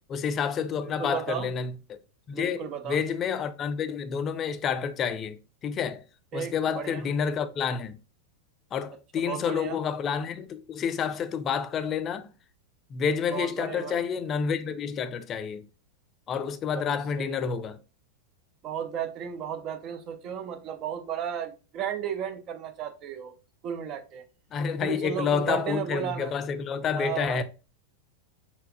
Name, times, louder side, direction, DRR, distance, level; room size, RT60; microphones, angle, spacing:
voice 1, 0.0-1.7 2.3-6.0 6.3-8.0 8.7-12.2 12.9-15.6 16.3-17.8 24.5-27.4, left 6 dB, 30° left, 0.3 m, -29 dB
voice 2, 0.8-1.5 2.3-3.0 6.3-7.0 9.3-9.8 13.3-14.0 16.7-17.5 18.6-23.3 23.6-24.2 24.8-26.3 26.9-27.4, right 8 dB, 35° right, 0.6 m, -34 dB
4.5 x 3.5 x 2.3 m
figure-of-eight pair, 90°, 0 cm